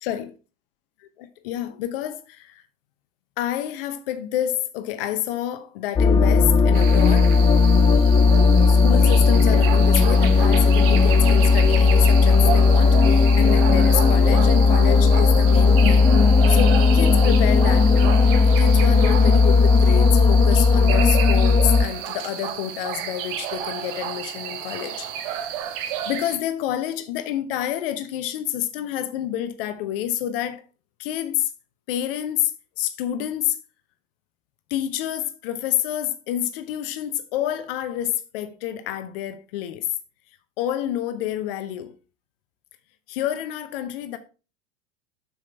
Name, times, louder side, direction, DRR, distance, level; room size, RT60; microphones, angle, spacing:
voice 1, 1.2-2.6 3.4-7.5 8.7-16.1 16.5-18.1 18.6-25.5 26.1-30.6 31.0-31.5 31.9-32.5 32.8-33.6 34.7-39.9 40.6-41.9 43.1-44.2, left 12 dB, 45° left, 1.0 m, -28 dB
sound 1, 6.0-21.9, left 4 dB, 15° left, 0.4 m, -16 dB
sound 2, 6.7-26.4, right 9 dB, 45° right, 1.1 m, -32 dB
7.4 x 5.9 x 4.3 m
figure-of-eight pair, 85°, 38 cm